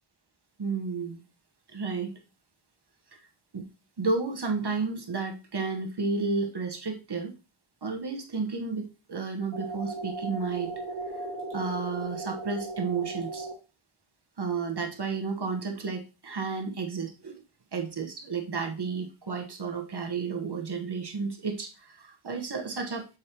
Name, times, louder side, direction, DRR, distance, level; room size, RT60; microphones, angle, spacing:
voice 1, 0.6-1.2 1.7-2.1 3.1-3.2 3.5-3.6 4.0-7.3 7.8-10.7 11.1-11.2 11.5-13.5 14.4-17.4 17.7-23.1, right 4 dB, 50° right, 3 dB, 1.2 m, -32 dB
sound 1, 9.5-13.5, right 3 dB, 10° left, 2.9 m, -36 dB
7.3 x 4.8 x 2.9 m, 0.30 s
wide cardioid pair, 110°, 50 cm